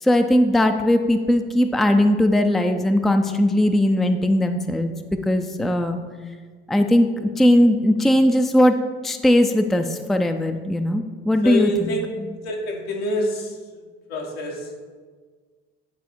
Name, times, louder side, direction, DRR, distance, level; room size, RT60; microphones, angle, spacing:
voice 1, 0.0-4.9 5.3-6.0 6.7-8.8 9.0-12.0, left 1 dB, ahead, 6 dB, 0.5 m, -19 dB
voice 2, 11.4-12.0 12.4-13.5 14.1-14.6, left 1 dB, 75° left, -1 dB, 1.6 m, -26 dB
9.5 x 4.1 x 4.6 m, 1.5 s
hypercardioid pair, 65°, 31 cm